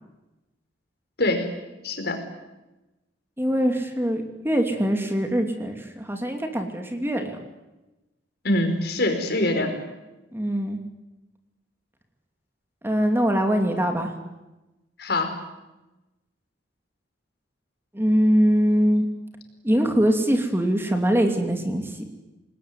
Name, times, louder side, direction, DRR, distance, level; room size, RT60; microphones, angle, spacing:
voice 1, 1.8-2.2 8.4-9.7 15.0-15.3, left 1 dB, 60° left, 6 dB, 4.9 m, -24 dB
voice 2, 3.4-7.4 10.3-10.8 12.8-14.1 17.9-19.1 19.6-22.0, equal, 15° right, 4 dB, 2.8 m, -22 dB
27.5 x 20.0 x 9.9 m, 1.0 s
head